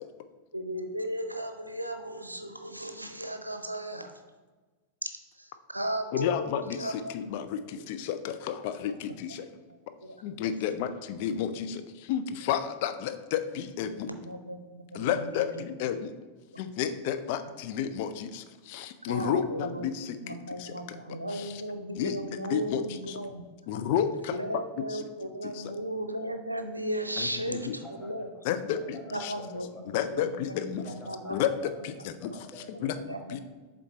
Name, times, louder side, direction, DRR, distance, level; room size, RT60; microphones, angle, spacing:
voice 1, 0.5-4.2 5.0-7.2 7.6-7.7 9.7-10.2 10.6-10.7 14.0-15.6 17.4-17.5 19.0-19.9 20.2-23.4 24.3-28.3 29.1-29.7 30.1-30.6 30.8-31.4 32.0-32.4 32.7-33.4, right 1 dB, 85° right, 7 dB, 0.6 m, -36 dB
voice 2, 6.1-9.5 10.2-14.1 14.9-16.1 16.6-20.7 21.3-21.6 22.0-22.2 22.5-23.2 23.7-24.4 24.8-25.0 25.4-25.7 27.2-27.8 28.4-29.3 29.9-30.8 31.3-31.5 31.8-32.3 32.8-33.0 33.3-33.4, left 9 dB, 50° left, 9 dB, 0.5 m, -31 dB
voice 3, 27.8-28.4 28.7-29.8 30.8-33.2, equal, 10° left, -1 dB, 1.6 m, -48 dB
7.2 x 3.9 x 4.3 m, 1.3 s
figure-of-eight pair, 90°, 0 cm